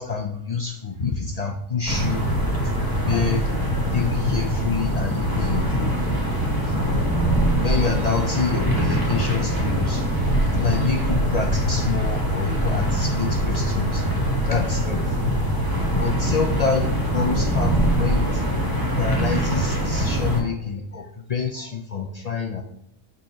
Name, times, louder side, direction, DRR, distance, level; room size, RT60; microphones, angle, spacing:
voice 1, 0.0-2.3 2.7-3.5 3.9-6.0 6.8-6.9 7.6-10.1 10.6-14.0 14.5-15.2 15.5-15.7 16.0-18.4 18.8-22.6, left 5 dB, 70° left, 3 dB, 0.3 m, -27 dB
sound 1, 1.9-20.4, equal, 15° right, 1.3 m, -23 dB
6.4 x 4.1 x 5.6 m, 0.82 s
omnidirectional pair, 1.4 m